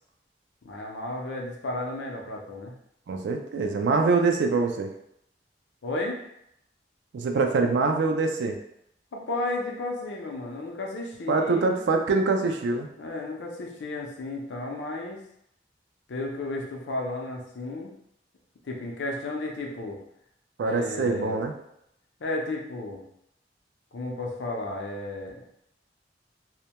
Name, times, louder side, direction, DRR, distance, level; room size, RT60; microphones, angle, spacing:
voice 1, 0.6-2.7 5.8-6.2 9.1-11.8 13.0-15.2 16.1-17.9 18.6-20.0 20.6-21.4 22.2-23.0 23.9-25.4, left 2 dB, 85° left, 0 dB, 0.5 m, -33 dB
voice 2, 3.1-4.9 7.1-8.6 11.3-12.9 20.6-21.5, right 4 dB, 85° right, 4 dB, 0.3 m, -24 dB
2.1 x 2.1 x 2.8 m, 0.76 s
head